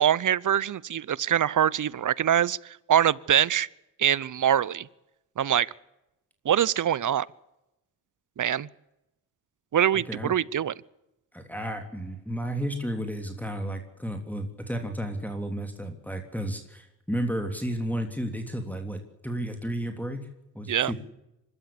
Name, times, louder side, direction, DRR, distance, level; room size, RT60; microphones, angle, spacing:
voice 1, 0.0-3.7 4.0-4.9 5.4-5.7 6.4-7.3 8.4-8.7 9.7-10.7 20.7-20.9, right 10 dB, 40° right, 23 dB, 0.8 m, -24 dB
voice 2, 9.9-10.3 11.3-20.3 20.5-20.9, equal, 5° left, 4 dB, 3.2 m, -32 dB
24.5 x 13.5 x 8.6 m, 0.91 s
hypercardioid pair, 55°, 48 cm